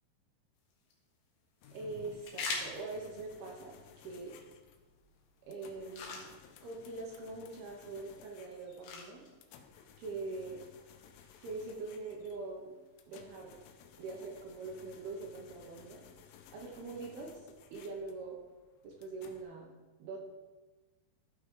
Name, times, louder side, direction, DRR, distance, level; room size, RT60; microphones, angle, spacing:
sound 1, 0.6-13.6, left 3 dB, 65° left, 2.7 m, -48 dB
sound 2, 1.6-19.4, left 8 dB, 80° left, 2.4 m, -58 dB
voice 1, 1.7-4.3 5.5-6.3 6.6-9.2 10.0-10.6 11.4-12.8 13.1-13.5 14.0-16.0 16.5-17.4 17.7-18.4 18.8-19.7 20.0-20.2, right 3 dB, 70° right, 0 dB, 2.7 m, -43 dB
13.0 x 6.1 x 3.8 m, 1.2 s
omnidirectional pair, 5.3 m